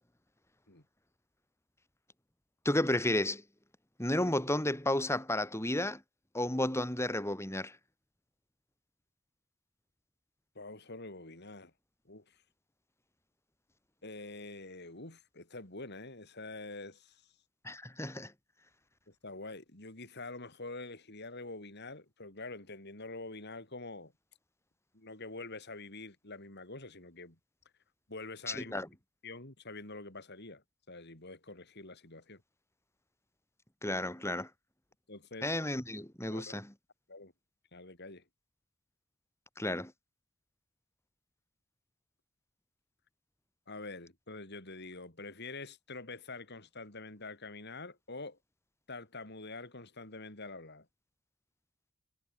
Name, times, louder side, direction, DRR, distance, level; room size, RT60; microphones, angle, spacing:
voice 1, 2.6-3.4 4.0-6.0 6.3-7.8 17.6-18.3 28.5-28.9 33.8-34.5 35.4-36.7 39.6-39.9, left 1 dB, 15° left, 4.6 m, -32 dB
voice 2, 10.5-11.7 12.0-12.4 14.0-17.3 19.1-24.1 24.9-27.4 28.1-28.8 29.2-32.4 35.1-35.5 36.3-36.6 37.1-37.3 37.7-38.2 43.7-48.4 48.9-50.9, left 3 dB, 50° left, 5.0 m, -46 dB
head